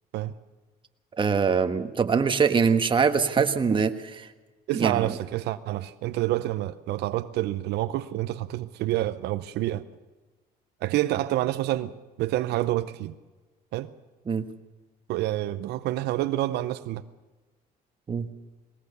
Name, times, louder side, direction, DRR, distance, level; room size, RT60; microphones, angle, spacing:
voice 1, 1.2-4.3 4.7-5.1 14.3-14.5 18.1-18.3, right 6 dB, 30° right, 1.5 m, -23 dB
voice 2, 4.7-9.8 10.8-11.9 12.2-13.2 13.7-13.9 15.1-17.0, right 15 dB, 80° right, 0.7 m, -28 dB
20.0 x 19.5 x 6.8 m
cardioid pair, 110°, 17 cm